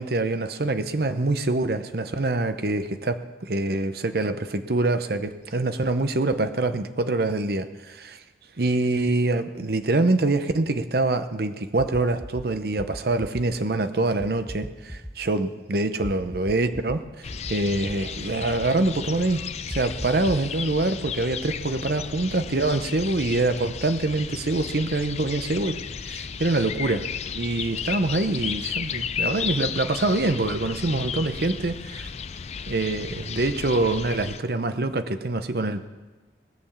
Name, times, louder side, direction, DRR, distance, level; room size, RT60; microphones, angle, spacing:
voice 1, 0.0-8.2 8.6-17.0 17.5-27.1 27.3-32.1 32.7-35.9, right 2 dB, 60° right, 10 dB, 0.8 m, -25 dB
sound 1, 11.8-12.4 12.8-13.4 14.2-15.1 16.0-17.0 17.3-18.0 19.7-20.5, equal, ahead, 0.8 m, -36 dB
sound 2, 17.2-34.4, left 7 dB, 35° left, 0.4 m, -34 dB
18.5 x 7.0 x 7.2 m, 1.2 s
head